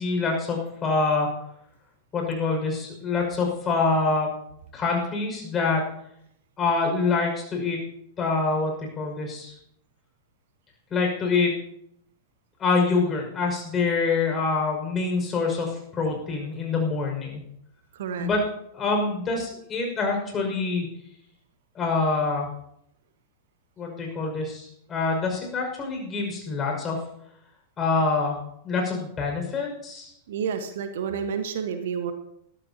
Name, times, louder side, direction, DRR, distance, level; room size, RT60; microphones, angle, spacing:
voice 1, 0.0-1.3 2.1-4.3 4.7-5.8 6.6-7.8 8.2-9.5 10.9-11.5 12.6-17.4 18.2-18.4 18.7-20.9 21.7-22.5 23.8-27.0 27.8-28.4 28.6-30.1, left 4 dB, 25° left, 1 dB, 5.9 m, -25 dB
voice 2, 17.9-18.3 30.3-32.1, right 7 dB, 60° right, 8 dB, 1.3 m, -30 dB
21.5 x 13.5 x 2.9 m, 0.73 s
figure-of-eight pair, 90°, 0 cm